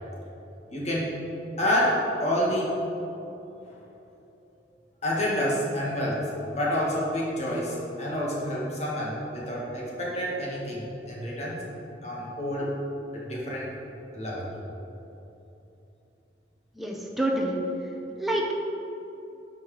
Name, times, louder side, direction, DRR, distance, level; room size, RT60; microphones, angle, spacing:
voice 1, 0.7-1.1 1.6-2.7 3.7-3.8 5.0-11.6 12.0-12.7 13.1-13.7 14.1-14.5, equal, 35° left, -5 dB, 2.0 m, -28 dB
voice 2, 16.7-17.6 18.2-18.6, right 1 dB, ahead, -2 dB, 0.9 m, -27 dB
12.0 x 4.8 x 5.0 m, 2.9 s
head